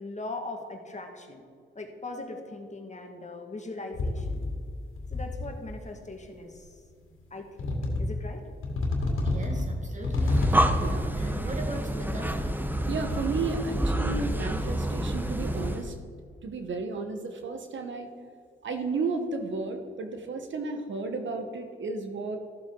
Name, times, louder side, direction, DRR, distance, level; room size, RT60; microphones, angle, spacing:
voice 1, 0.0-1.4 1.7-4.5 5.1-6.7 7.3-8.4, left 2 dB, 35° left, 3 dB, 1.7 m, -40 dB
sound 1, 3.9-4.7 5.0-5.7 6.6-6.7 7.6-8.3 8.6-11.0, left 2 dB, 80° left, 2.2 m, -28 dB
voice 2, 9.2-10.4 11.2-12.5 18.3-18.4, right 1 dB, 35° right, 2 dB, 2.2 m, -39 dB
Breathing, 10.1-15.9, right 1 dB, 10° right, 0.9 m, -28 dB
voice 3, 10.6-11.1 12.9-15.9 16.4-18.1 18.6-22.4, right 3 dB, 65° right, 5 dB, 1.1 m, -33 dB
14.0 x 7.4 x 3.8 m, 2.2 s
cardioid pair, 65°, 21 cm